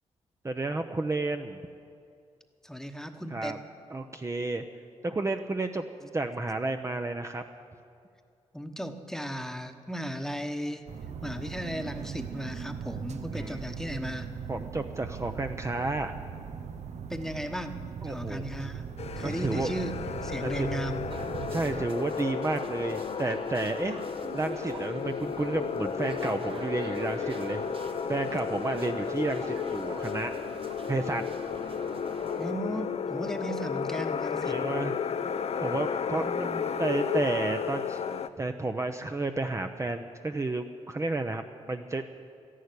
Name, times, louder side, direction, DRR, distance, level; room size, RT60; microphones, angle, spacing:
voice 1, 0.4-1.6 3.3-3.6 3.9-4.6 5.0-7.4 13.3-13.6 14.5-16.2 18.0-18.5 19.2-19.7 20.4-20.7 21.5-24.0 24.3-27.6 28.1-30.3 30.9-31.2 34.4-34.9 35.6-36.5 36.8-38.0 38.4-41.4 41.7-42.0, right 2 dB, 25° right, 5 dB, 0.7 m, -31 dB
voice 2, 2.6-3.6 8.5-10.9 11.2-14.3 17.1-18.8 19.2-19.9 20.2-21.0 32.4-34.6 36.1-36.7, equal, 5° left, 7 dB, 1.2 m, -36 dB
sound 1, 10.9-21.9, right 6 dB, 70° right, 0.8 m, -39 dB
sound 2, 19.0-38.3, left 7 dB, 60° left, 0.7 m, -33 dB
sound 3, 21.1-32.5, right 4 dB, 50° right, 1.1 m, -44 dB
13.0 x 11.5 x 9.7 m, 2.4 s
cardioid pair, 65°, 12 cm